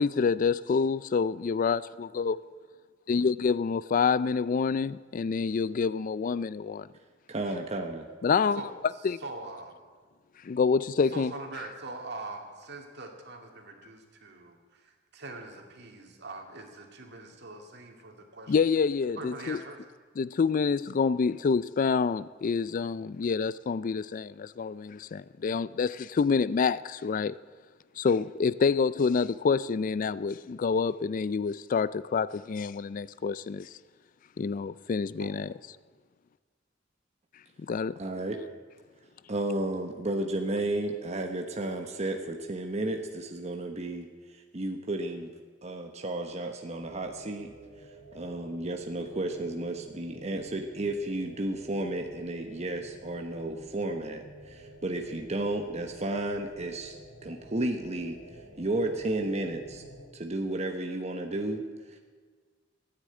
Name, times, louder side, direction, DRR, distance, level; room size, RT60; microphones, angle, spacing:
voice 1, 0.0-2.4 3.1-6.9 8.2-8.6 9.0-9.2 10.4-11.3 18.5-19.6 20.2-27.4 28.0-33.7 34.4-35.5 37.7-37.9, left 5 dB, 45° left, 0.4 m, -27 dB
voice 2, 7.3-8.1 38.0-38.4 39.3-45.3 45.6-47.5 48.1-57.0 57.2-58.2 58.6-59.8 60.1-61.6 61.9-62.0, right 2 dB, 35° right, 1.0 m, -33 dB
voice 3, 9.2-9.8 11.1-18.7 19.2-19.8 35.2-35.3, right 2 dB, 60° right, 2.5 m, -42 dB
sound 1, 46.8-60.1, right 1 dB, 70° left, 3.4 m, -51 dB
15.0 x 9.9 x 8.7 m
head